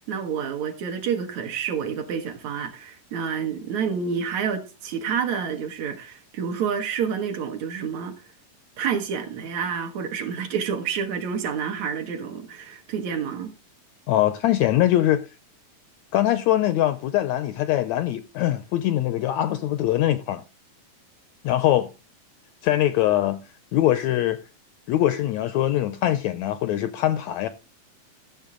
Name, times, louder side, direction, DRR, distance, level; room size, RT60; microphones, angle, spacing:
voice 1, 0.1-8.2 8.8-13.5, right 7 dB, 65° right, 2.3 m, -28 dB
voice 2, 14.1-15.3 16.1-20.4 21.4-21.9 22.6-23.4 23.7-24.4 24.9-27.5, left 13 dB, 80° left, 1.6 m, -22 dB
13.5 x 7.2 x 3.7 m
omnidirectional pair, 3.8 m